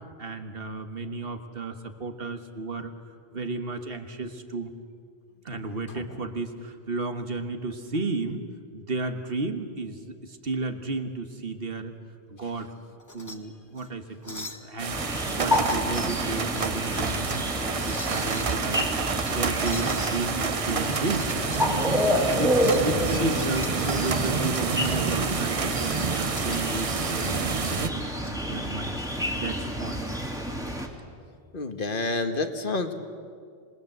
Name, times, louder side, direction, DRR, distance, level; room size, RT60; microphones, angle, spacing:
voice 1, 0.2-2.9 3.3-4.7 5.5-8.5 8.7-11.9 12.3-12.7 13.1-18.8 19.3-21.3 22.1-29.0 29.4-30.0, right 3 dB, 65° right, 7 dB, 1.7 m, -33 dB
sound 1, 13.0-13.4 13.7-13.9 14.2-14.7 15.1-16.1 16.5-17.5 17.8-18.6 19.2-20.1 20.8-21.7 22.0-26.8 27.7-28.3, left 1 dB, 20° left, 1.5 m, -43 dB
sound 2, 14.8-27.9, right 5 dB, 40° right, 0.8 m, -29 dB
sound 3, 14.9-30.9, equal, 5° right, 2.3 m, -29 dB
voice 2, 31.5-32.9, left 3 dB, 60° left, 7 dB, 1.6 m, -29 dB
26.5 x 20.5 x 8.0 m, 2.2 s
omnidirectional pair, 1.0 m